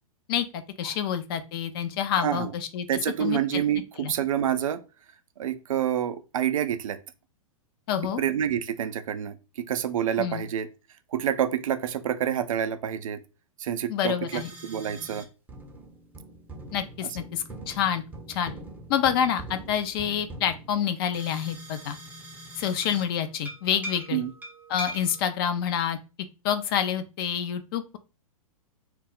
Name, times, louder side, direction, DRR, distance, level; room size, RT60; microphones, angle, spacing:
voice 1, 0.3-2.9 3.2-3.6 4.0-4.1 7.9-8.2 10.2-10.4 13.9-14.5 16.7-18.0 18.3-18.5 18.9-22.0 22.6-24.2 24.7-26.0 26.4-28.0, left 9 dB, 40° left, 0.4 m, -28 dB
voice 2, 2.1-2.5 2.9-4.8 5.4-7.0 8.2-10.7 11.1-13.2 13.6-15.3 24.1-24.3, right 10 dB, 65° right, 0.4 m, -28 dB
sound 1, 14.3-15.2 15.5-23.1 23.4-25.2, right 1 dB, 10° right, 0.5 m, -42 dB
2.2 x 2.0 x 3.8 m
figure-of-eight pair, 115°, 18 cm